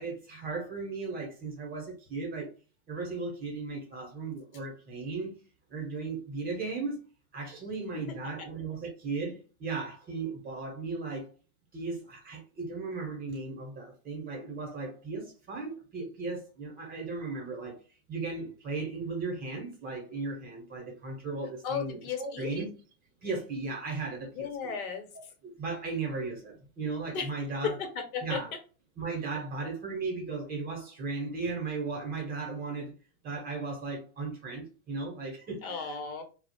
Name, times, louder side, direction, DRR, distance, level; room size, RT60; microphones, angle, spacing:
voice 1, 0.0-2.5 2.9-5.3 5.7-7.0 7.3-11.3 11.7-17.8 18.1-22.7 23.2-24.7 25.4-27.8 28.2-28.5 29.0-32.9 33.2-36.0, right 3 dB, 20° right, 0.7 m, -36 dB
voice 2, 21.6-22.5 24.3-25.1 27.1-27.3 27.6-28.4 35.6-36.2, left 6 dB, 75° left, 0.9 m, -34 dB
2.3 x 2.0 x 2.7 m
supercardioid pair, 140°, 43 cm